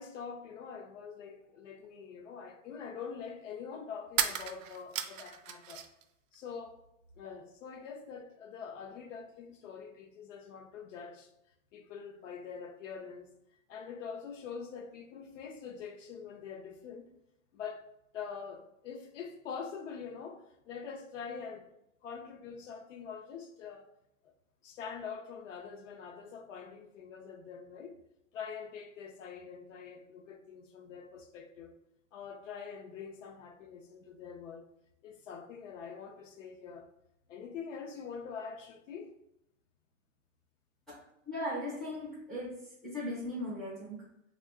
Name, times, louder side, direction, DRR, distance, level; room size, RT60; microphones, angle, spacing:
voice 1, 0.0-5.8 6.3-6.8 7.2-11.3 11.7-13.3 13.7-17.1 17.5-17.8 18.1-21.7 22.0-23.9 24.6-28.0 28.3-31.7 32.1-34.7 35.0-36.9 37.3-39.1, left 6 dB, 65° left, 0.6 m, -44 dB
sound 1, 1.8-1.9 4.1-6.0 6.3-7.2, right 9 dB, 75° right, 0.5 m, -36 dB
voice 2, 41.3-42.5 42.8-44.0, left 1 dB, ahead, 0.3 m, -37 dB
2.8 x 2.2 x 3.4 m
hypercardioid pair, 140°, 40 cm